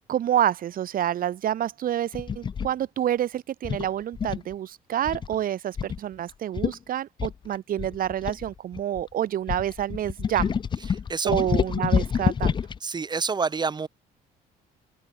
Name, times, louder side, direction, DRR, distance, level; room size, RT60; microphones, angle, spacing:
voice 1, 0.1-10.5 11.2-12.6, right 11 dB, 55° right, 1.9 m, -28 dB
sound 1, 2.1-2.7 3.6-4.5 5.1-5.3 5.8-6.0 6.3-6.4 6.6-6.8 7.2-9.0 9.5-12.8, left 6 dB, 30° left, 0.5 m, -27 dB
voice 2, 10.9-11.4 12.8-13.9, right 5 dB, 25° right, 2.2 m, -28 dB
open air
cardioid pair, 110°, 17 cm